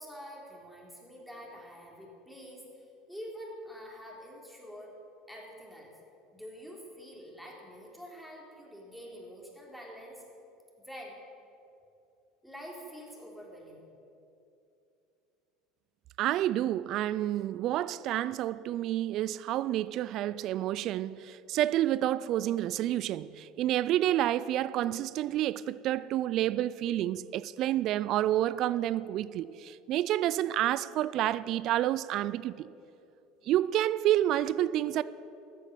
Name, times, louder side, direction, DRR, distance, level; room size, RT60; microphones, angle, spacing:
voice 1, 0.0-5.0 5.3-5.9 6.3-10.2 10.9-11.2 12.4-13.8, equal, ahead, 3.4 m, -46 dB
voice 2, 16.2-32.7 33.4-35.0, right 13 dB, 55° right, 0.4 m, -29 dB
13.5 x 8.4 x 7.0 m
hypercardioid pair, 85°, 0 cm